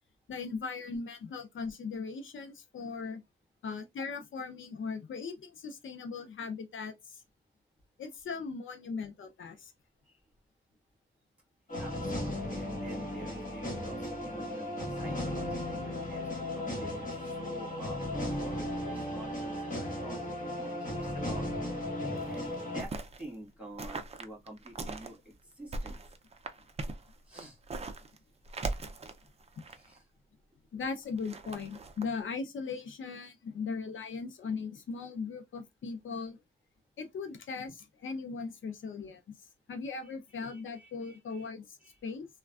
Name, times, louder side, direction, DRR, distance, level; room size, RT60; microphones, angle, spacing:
voice 1, 0.3-3.2 3.6-7.2 8.0-9.7 29.6-29.7 30.7-36.4 37.0-39.4 39.7-42.3, left 4 dB, 75° left, 0.5 m, -39 dB
sound 1, 11.7-22.8, left 1 dB, 40° left, 1.2 m, -36 dB
voice 2, 11.8-21.7 22.3-22.4 22.7-26.0 27.3-27.6 29.7-30.0 40.0-41.5 41.8-42.0, right 1 dB, 5° right, 1.4 m, -49 dB
sound 2, 22.1-23.2 23.8-25.1 25.5-28.2 28.4-30.0 31.0-32.0, right 3 dB, 30° right, 0.4 m, -40 dB
3.3 x 2.2 x 2.3 m
wide cardioid pair, 125°, 20 cm